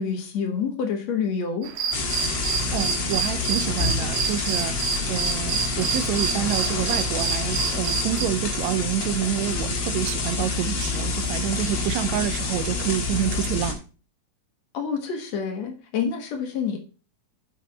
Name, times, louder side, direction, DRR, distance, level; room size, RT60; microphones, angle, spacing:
voice 1, 0.0-1.7 14.7-16.8, left 6 dB, 65° left, 2.6 m, -27 dB
sound 1, 1.6-8.3, right 7 dB, 65° right, 1.6 m, -29 dB
sound 2, 1.9-13.7, left 3 dB, 45° left, 2.0 m, -27 dB
voice 2, 2.7-13.8, right 12 dB, 80° right, 1.9 m, -28 dB
8.4 x 5.9 x 4.0 m
omnidirectional pair, 3.3 m